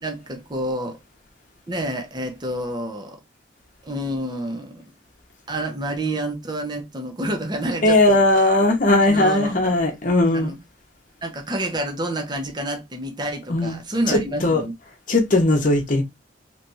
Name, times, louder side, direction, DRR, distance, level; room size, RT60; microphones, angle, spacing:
voice 1, 0.0-1.0 1.7-3.2 3.8-4.8 5.5-8.5 9.0-9.5 10.3-10.6 11.2-14.7, right 1 dB, 25° right, 0.7 m, -28 dB
voice 2, 7.8-10.5 13.5-13.8 14.1-14.6 15.1-16.0, left 2 dB, 45° left, 0.9 m, -18 dB
3.3 x 3.0 x 2.7 m
head